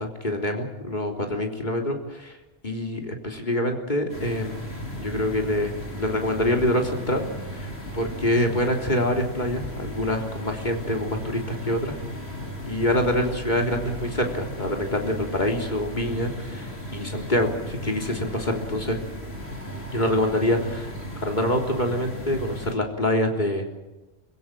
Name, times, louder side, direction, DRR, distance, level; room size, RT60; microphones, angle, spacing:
voice 1, 0.0-2.3 2.6-4.7 5.0-11.9 12.7-19.0 19.9-20.9 21.2-23.6, left 1 dB, 45° left, 2 dB, 3.7 m, -26 dB
sound 1, 4.1-22.7, equal, 65° left, 4.7 m, -36 dB
27.0 x 16.5 x 7.6 m, 1.1 s
omnidirectional pair, 1.1 m